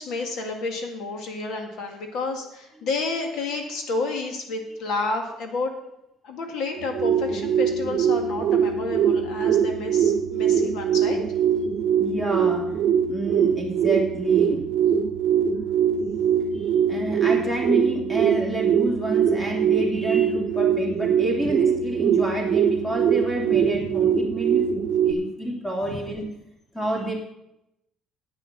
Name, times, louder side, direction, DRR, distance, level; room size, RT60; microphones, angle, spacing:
voice 1, 0.0-5.7 6.2-11.2 25.9-26.0, left 3 dB, 70° left, 3 dB, 1.9 m, -30 dB
sound 1, 6.7-25.1, right 8 dB, 60° right, 0.8 m, -22 dB
voice 2, 12.0-12.6 13.1-14.6 16.5-26.2 26.7-27.1, right 1 dB, 10° left, -1 dB, 2.6 m, -28 dB
9.6 x 9.1 x 5.9 m, 0.83 s
cardioid pair, 145°, 0 cm